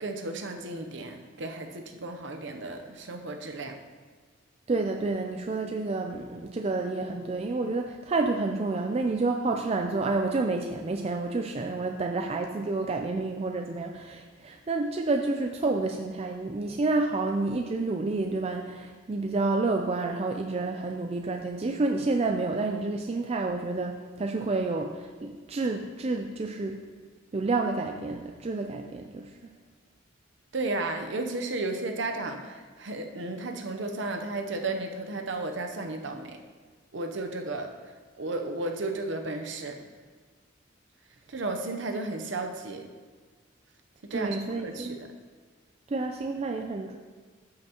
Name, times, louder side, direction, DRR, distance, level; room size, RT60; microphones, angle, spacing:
voice 1, 0.0-3.8 30.5-36.4 36.9-37.7 38.1-39.9 41.3-42.9 44.1-45.1, right 2 dB, 60° right, 4 dB, 0.7 m, -34 dB
voice 2, 4.7-26.8 27.3-29.5 44.1-45.0 45.9-47.0, right 3 dB, 30° right, 3 dB, 0.3 m, -29 dB
13.0 x 5.7 x 2.9 m, 1.5 s
head